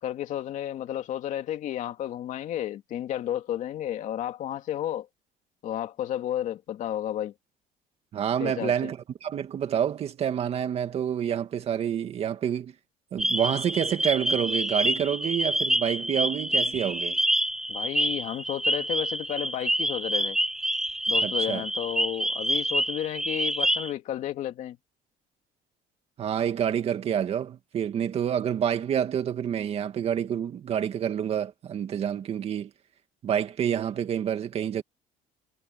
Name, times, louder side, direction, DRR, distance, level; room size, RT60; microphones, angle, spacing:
voice 1, 0.0-5.1 5.6-7.3 8.4-8.9 17.7-20.4 21.1-24.8, left 11 dB, 50° left, 2.4 m, -32 dB
voice 2, 8.1-12.7 13.1-17.2 21.2-21.6 26.2-32.7 33.2-34.8, right 9 dB, 40° right, 2.0 m, -28 dB
sound 1, 13.2-23.9, right 1 dB, 5° right, 0.6 m, -27 dB
cardioid pair, 170°, 16 cm